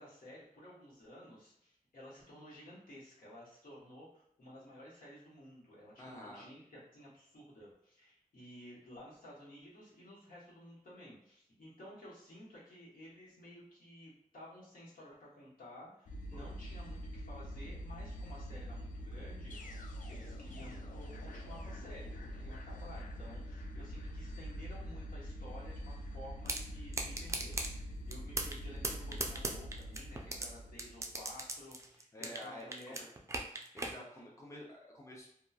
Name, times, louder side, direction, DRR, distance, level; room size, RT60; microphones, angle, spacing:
voice 1, 0.0-33.0 34.2-34.3, equal, 85° left, -7 dB, 1.2 m, -54 dB
voice 2, 6.0-6.4 16.3-16.5 32.1-33.1 33.7-35.3, left 1 dB, 20° left, -3 dB, 0.6 m, -49 dB
sound 1, 16.1-31.4, equal, 65° left, 0.4 m, -44 dB
sound 2, 26.5-26.6 26.9-27.7 28.1-28.6 28.8-30.5 30.8-32.5 32.7-33.9, right 2 dB, 20° right, 0.3 m, -37 dB
2.9 x 2.3 x 2.4 m, 0.70 s
wide cardioid pair, 125°, 14 cm